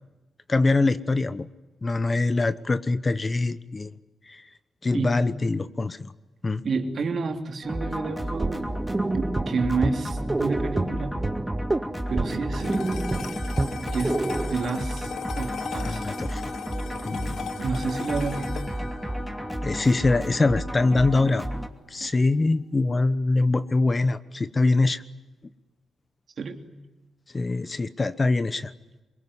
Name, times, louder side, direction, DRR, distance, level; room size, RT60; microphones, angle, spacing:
voice 1, 0.5-1.5 1.8-3.9 4.3-4.4 4.8-6.1 6.4-6.6 15.8-16.5 17.0-17.5 19.6-21.5 21.9-25.0 27.3-28.7, left 3 dB, 30° left, 14 dB, 1.1 m, -23 dB
voice 2, 6.6-8.7 9.1-11.2 12.1-12.8 13.9-16.1 17.6-18.6 22.0-22.1 26.4-26.6, right 4 dB, 60° right, 5 dB, 3.2 m, -30 dB
sound 1, 7.6-21.7, equal, ahead, 2.8 m, -32 dB
sound 2, 8.3-14.5, right 2 dB, 20° right, 1.2 m, -28 dB
sound 3, 12.5-21.1, left 7 dB, 75° left, 1.1 m, -38 dB
24.5 x 22.0 x 9.8 m, 1.1 s
cardioid pair, 95°, 0 cm